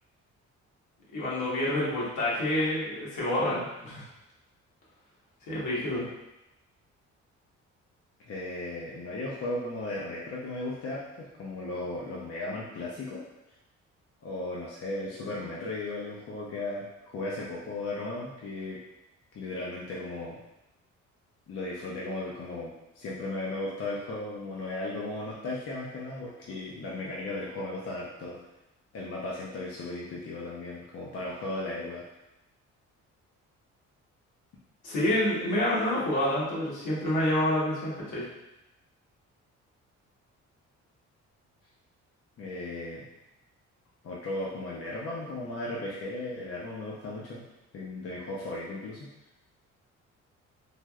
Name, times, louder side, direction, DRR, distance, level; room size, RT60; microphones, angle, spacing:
voice 1, 1.1-4.0 5.5-6.0 34.8-38.2, left 1 dB, 75° left, -7 dB, 1.2 m, -28 dB
voice 2, 8.3-13.2 14.2-18.8 19.3-20.4 21.5-28.4 28.9-32.0 42.4-43.1 44.0-47.4 47.7-49.1, left 2 dB, 50° left, -5 dB, 0.6 m, -36 dB
3.3 x 2.6 x 2.3 m, 0.92 s
cardioid pair, 90°, 30 cm